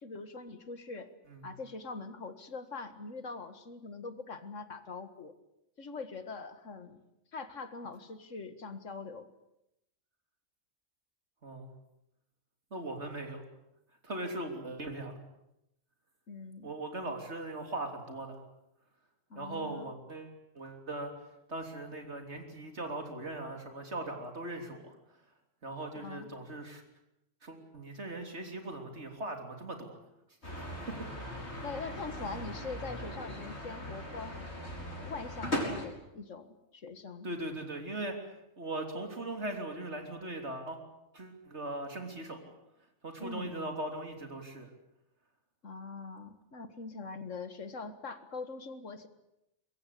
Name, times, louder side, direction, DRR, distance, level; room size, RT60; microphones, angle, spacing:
voice 1, 0.0-1.1 1.4-5.3 5.8-7.0 7.3-9.3 16.3-16.7 19.3-19.9 26.0-26.3 31.6-34.4 35.0-37.3 43.2-43.5 45.6-49.1, left 4 dB, 70° left, 10 dB, 2.1 m, -43 dB
voice 2, 12.7-13.4 14.0-15.2 16.6-18.4 19.4-21.1 21.5-25.0 25.6-26.8 27.4-30.0 30.9-31.0 37.2-38.2 38.6-40.8 41.1-42.5 43.0-44.7, right 2 dB, 60° right, 4 dB, 3.6 m, -39 dB
Tram pass by, 30.4-35.9, left 1 dB, 55° left, 5.0 m, -39 dB
23.5 x 22.0 x 8.4 m, 0.85 s
omnidirectional pair, 1.3 m